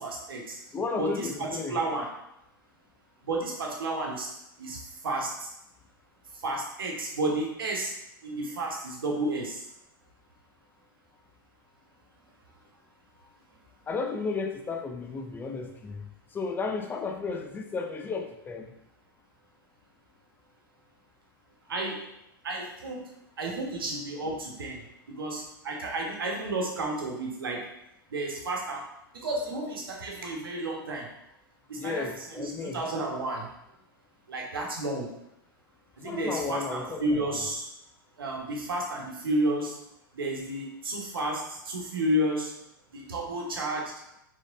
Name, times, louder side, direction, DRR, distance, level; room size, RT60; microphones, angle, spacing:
voice 1, 0.0-0.6 1.0-2.1 3.2-4.3 4.6-5.5 6.3-7.9 8.2-9.7 21.7-22.0 22.4-27.6 28.1-28.8 29.1-31.1 31.7-33.5 34.3-35.1 36.0-37.6 38.2-39.8 40.1-42.5 42.9-43.9, right 1 dB, 75° right, 0 dB, 1.2 m, -32 dB
voice 2, 0.7-1.8 13.9-16.1 16.3-18.7 31.8-32.8 36.0-37.2, left 4 dB, 15° left, 4 dB, 0.5 m, -33 dB
4.8 x 3.7 x 2.6 m, 0.81 s
figure-of-eight pair, 100°, 12 cm